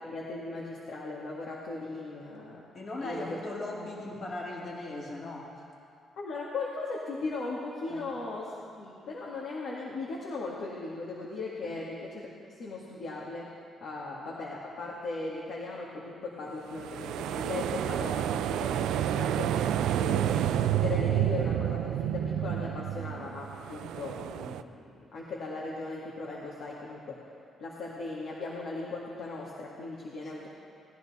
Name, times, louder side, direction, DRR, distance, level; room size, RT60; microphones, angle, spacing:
voice 1, 0.0-2.6 3.0-3.4 6.2-8.5 8.8-12.3 12.6-13.5 13.8-19.5 20.0-27.2 27.6-30.5, left 3 dB, 70° left, -4 dB, 1.9 m, -38 dB
voice 2, 2.7-5.7 7.9-8.1 11.6-11.8, left 2 dB, 45° left, -3 dB, 2.4 m, -38 dB
sound 1, 16.7-24.6, right 11 dB, 85° right, 0.4 m, -29 dB
18.5 x 10.5 x 4.2 m, 2.5 s
cardioid pair, 90°, 0 cm